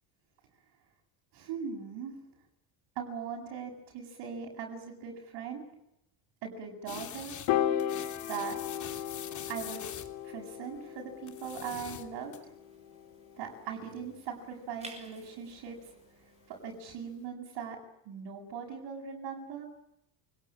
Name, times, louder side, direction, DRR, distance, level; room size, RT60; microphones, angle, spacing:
voice 1, 1.3-2.2 3.0-5.7 6.4-7.4 8.3-8.6 9.5-9.9 10.2-12.5 13.4-15.8 16.5-17.8 18.0-19.7, right 6 dB, 65° right, 0 dB, 8.0 m, -40 dB
sound 1, 6.9-7.5 7.8-10.1 11.3-12.4, left 9 dB, 40° left, 3.1 m, -44 dB
Piano, 7.5-13.9, left 11 dB, 65° left, 3.0 m, -36 dB
sound 2, 8.8-16.6, right 2 dB, 15° right, 6.0 m, -56 dB
29.5 x 20.5 x 9.0 m, 0.83 s
cardioid pair, 150°, 46 cm